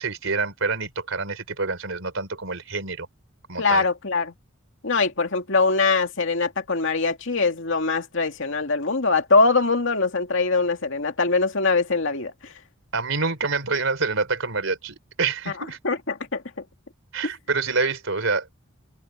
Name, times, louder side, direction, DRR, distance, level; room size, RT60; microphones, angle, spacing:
voice 1, 0.0-3.1 3.5-3.9 12.9-15.8 17.1-18.5, right 4 dB, 75° right, 4.0 m, -27 dB
voice 2, 3.6-4.3 4.8-12.5 15.8-16.4, left 3 dB, 65° left, 2.4 m, -22 dB
open air
head